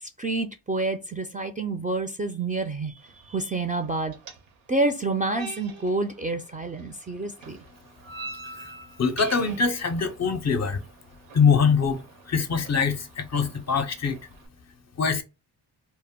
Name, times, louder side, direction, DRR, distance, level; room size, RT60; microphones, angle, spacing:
voice 1, 0.0-4.1 4.7-7.6, right 2 dB, 20° right, 0.3 m, -28 dB
sound 1, 3.0-14.5, right 3 dB, 85° right, 0.7 m, -46 dB
voice 2, 9.0-10.8 11.3-12.0 12.3-14.2 15.0-15.2, left 5 dB, 40° left, 0.5 m, -23 dB
2.1 x 2.0 x 3.5 m
cardioid pair, 60°, 44 cm